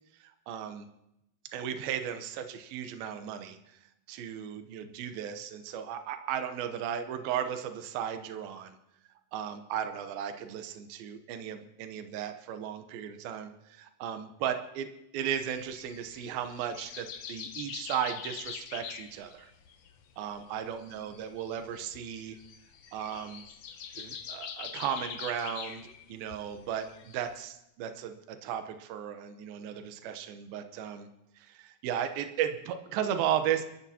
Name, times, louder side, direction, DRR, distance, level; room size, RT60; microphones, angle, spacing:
voice 1, 0.2-0.9 1.5-3.8 4.1-8.8 9.3-14.9 15.1-19.5 20.2-22.4 22.9-23.4 24.0-31.1 31.4-33.6, right 9 dB, 80° right, 7 dB, 2.7 m, -35 dB
sound 1, 15.3-27.3, left 7 dB, 80° left, 1.4 m, -44 dB
29.0 x 13.5 x 2.8 m, 0.84 s
omnidirectional pair, 4.2 m